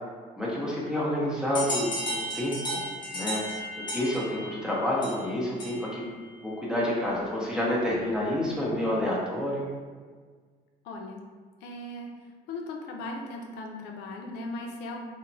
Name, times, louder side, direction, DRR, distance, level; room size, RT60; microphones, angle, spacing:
voice 1, 0.4-2.0 2.3-2.8 3.1-3.4 3.9-6.0 6.4-9.7, left 1 dB, 5° right, -6 dB, 0.7 m, -28 dB
sound 1, 1.5-6.1, equal, 25° left, 0.8 m, -34 dB
voice 2, 10.8-11.2 11.6-12.1 12.5-15.1, left 2 dB, 85° left, 1 dB, 0.4 m, -38 dB
2.9 x 2.0 x 2.6 m, 1.5 s
cardioid pair, 110°, 17 cm